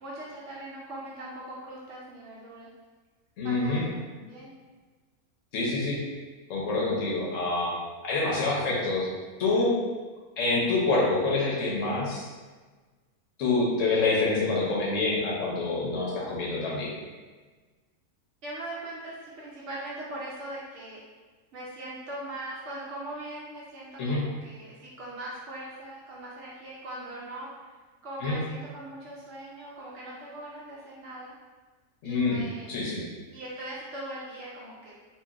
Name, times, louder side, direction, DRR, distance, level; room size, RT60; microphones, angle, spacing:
voice 1, 0.0-2.7 3.4-4.5 18.4-21.0 21.5-27.5 28.0-31.3 32.0-32.7 33.3-34.9, right 1 dB, 65° right, -5 dB, 0.7 m, -40 dB
voice 2, 3.4-3.8 5.5-6.0 6.5-7.7 8.0-9.1 9.4-9.7 10.4-12.3 13.4-16.9 24.0-24.2 28.2-28.4 32.0-32.4 32.7-33.0, left 3 dB, 60° left, -4 dB, 1.0 m, -26 dB
2.9 x 2.7 x 2.4 m, 1.4 s
omnidirectional pair, 1.6 m